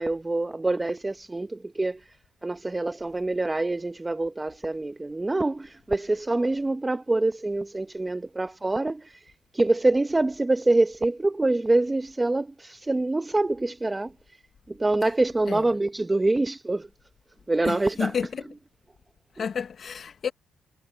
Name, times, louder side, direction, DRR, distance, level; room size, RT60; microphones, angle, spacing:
voice 1, 0.0-2.2 2.4-14.4 14.7-16.9 17.5-18.1, right 2 dB, 15° right, 1.0 m, -25 dB
voice 2, 17.6-18.5 19.3-20.3, left 6 dB, 50° left, 1.0 m, -31 dB
cardioid pair, 90°, 0 cm